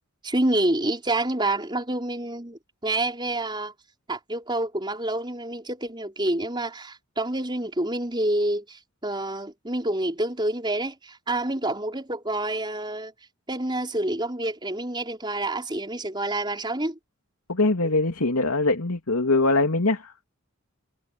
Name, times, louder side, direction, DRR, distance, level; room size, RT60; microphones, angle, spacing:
voice 1, 0.2-3.7 4.1-13.1 13.5-17.0, right 1 dB, 20° right, 4.9 m, -28 dB
voice 2, 17.5-20.2, left 2 dB, 90° left, 2.9 m, -22 dB
head